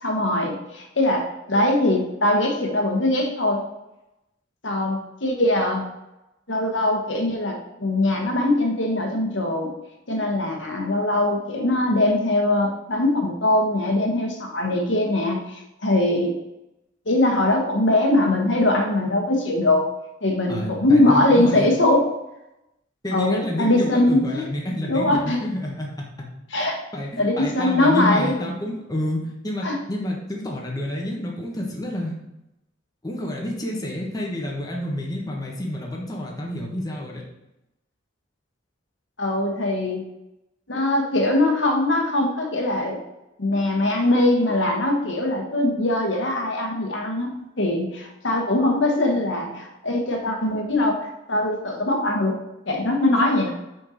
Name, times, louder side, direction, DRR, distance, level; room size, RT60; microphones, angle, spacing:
voice 1, 0.0-3.6 4.6-5.9 6.5-9.7 10.1-16.3 17.1-19.9 20.2-22.0 23.1-24.4 24.8-25.4 26.5-26.8 27.2-28.4 29.6-29.8 39.2-40.0 40.7-43.0 43.4-52.4 52.7-53.5, left 1 dB, 65° left, 2 dB, 1.4 m, -21 dB
voice 2, 20.5-21.7 23.0-25.9 26.6-26.7 26.9-32.1 33.0-37.2, left 1 dB, 20° left, -2 dB, 1.3 m, -29 dB
5.6 x 4.5 x 6.4 m, 0.91 s
head